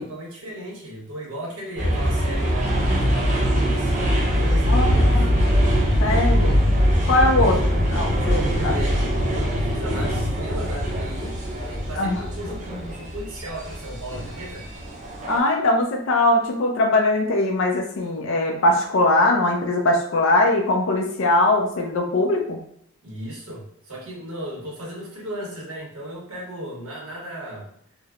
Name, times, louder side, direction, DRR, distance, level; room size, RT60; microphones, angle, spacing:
voice 1, 0.0-5.2 6.1-6.5 7.2-7.4 8.4-14.7 23.0-27.7, right 1 dB, 80° right, -3 dB, 0.9 m, -36 dB
sound 1, 1.8-15.4, equal, 35° right, 0.5 m, -22 dB
voice 2, 4.7-5.3 6.0-6.6 7.1-7.6 7.9-8.8 12.0-12.2 15.3-22.6, left 2 dB, 60° left, 2 dB, 0.4 m, -21 dB
3.2 x 2.0 x 2.3 m, 0.71 s
head